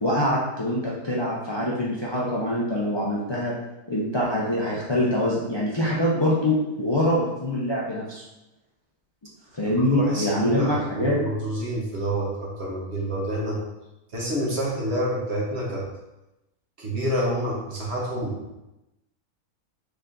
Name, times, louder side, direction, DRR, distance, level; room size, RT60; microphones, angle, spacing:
voice 1, 0.0-3.5 3.9-8.2 9.5-11.2, left 1 dB, 45° left, -6 dB, 0.3 m, -24 dB
voice 2, 9.6-13.6 14.1-15.8 16.8-18.6, right 1 dB, 45° right, -4 dB, 1.2 m, -28 dB
4.8 x 3.7 x 2.6 m, 0.94 s
omnidirectional pair, 1.6 m